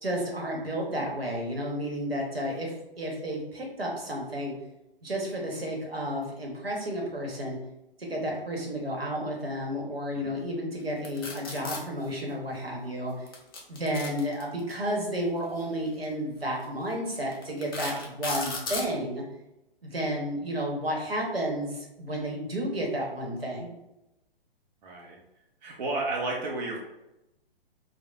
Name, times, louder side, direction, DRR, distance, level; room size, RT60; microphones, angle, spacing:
voice 1, 0.0-4.5 5.0-7.6 8.0-13.1 13.7-19.2 19.8-23.7, equal, 90° right, -1 dB, 0.8 m, -32 dB
sound 1, 11.0-11.8 13.3-14.7 15.9-16.0 16.6-16.7 17.3-18.9, left 3 dB, 25° left, 0.3 m, -35 dB
voice 2, 24.8-25.2 25.6-26.8, right 2 dB, 50° right, -1 dB, 0.5 m, -32 dB
3.0 x 2.0 x 2.3 m, 0.92 s
figure-of-eight pair, 125°, 29 cm